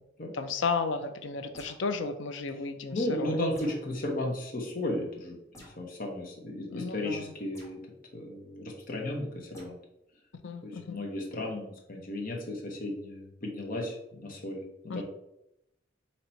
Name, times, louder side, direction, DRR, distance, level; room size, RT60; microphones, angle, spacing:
voice 1, 0.3-3.4 6.7-7.3 10.4-11.0 14.9-15.0, left 4 dB, 80° left, 8 dB, 0.5 m, -33 dB
sound 1, 1.5-2.0 3.5-3.9 5.5-5.8 7.5-7.8 9.5-9.7, equal, 15° left, 1.4 m, -51 dB
voice 2, 2.9-7.8 8.1-9.7 10.6-15.0, left 1 dB, 50° left, 0 dB, 1.0 m, -34 dB
4.2 x 2.9 x 4.4 m, 0.83 s
head